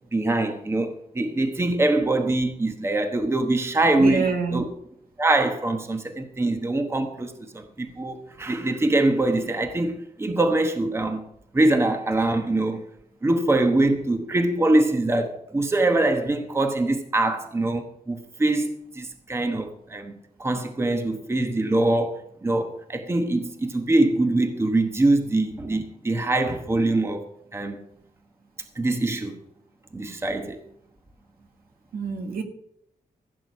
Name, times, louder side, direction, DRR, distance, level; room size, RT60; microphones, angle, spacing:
voice 1, 0.1-4.3 4.5-4.7 5.2-11.2 11.5-12.9 13.2-27.2 27.5-27.8 28.8-29.4 29.9-30.6, right 2 dB, 15° right, 1.1 m, -23 dB
voice 2, 4.0-4.6 31.9-32.4, right 5 dB, 75° right, 2.0 m, -26 dB
15.5 x 8.0 x 5.4 m
wide cardioid pair, 180°, 15 cm